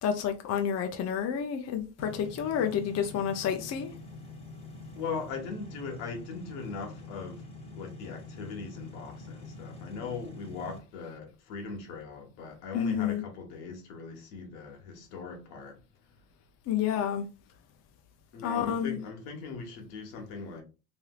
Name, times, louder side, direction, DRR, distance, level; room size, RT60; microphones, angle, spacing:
voice 1, 0.0-3.9 12.7-13.2 16.7-17.3 18.4-19.0, left 8 dB, 35° left, 0.5 m, -29 dB
sound 1, 2.0-10.8, left 3 dB, 15° left, 1.0 m, -45 dB
voice 2, 4.9-7.5 7.7-15.8 18.3-20.6, left 4 dB, 75° left, 1.3 m, -40 dB
3.3 x 2.7 x 2.3 m
supercardioid pair, 105°, 47 cm